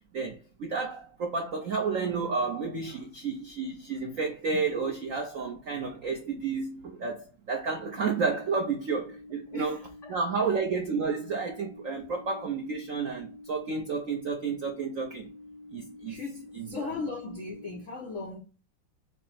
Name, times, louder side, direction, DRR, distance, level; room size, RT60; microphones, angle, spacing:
voice 1, 0.1-9.8 10.1-15.3 15.7-16.2 16.5-16.9, right 4 dB, 75° right, 0.7 m, -31 dB
sound 1, 7.8-17.8, left 2 dB, 30° left, 0.8 m, -48 dB
voice 2, 9.5-10.2 16.1-18.4, left 3 dB, 70° left, 0.7 m, -38 dB
5.6 x 2.1 x 4.1 m
omnidirectional pair, 2.3 m